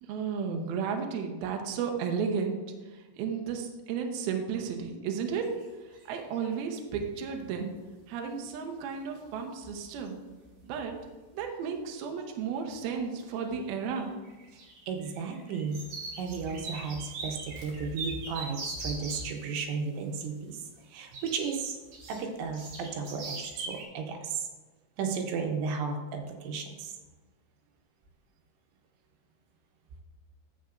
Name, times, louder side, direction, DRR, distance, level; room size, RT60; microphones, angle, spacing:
voice 1, 0.0-2.6 2.9-5.5 6.1-7.7 8.1-10.2 10.6-11.0 11.3-14.1, right 6 dB, 75° right, 3 dB, 2.5 m, -33 dB
sound 1, 5.4-5.7 5.9-6.6 8.5-8.6 9.3-9.4 9.6-10.0 10.3-10.8 11.4-11.5 12.5-13.0 13.3-19.3 21.1-23.8, right 2 dB, 55° right, 2.9 m, -41 dB
voice 2, 14.9-15.8 16.2-21.8 22.1-24.5 25.0-26.9, right 5 dB, 90° right, 3 dB, 3.2 m, -34 dB
11.5 x 7.7 x 2.5 m, 1.3 s
omnidirectional pair, 5.0 m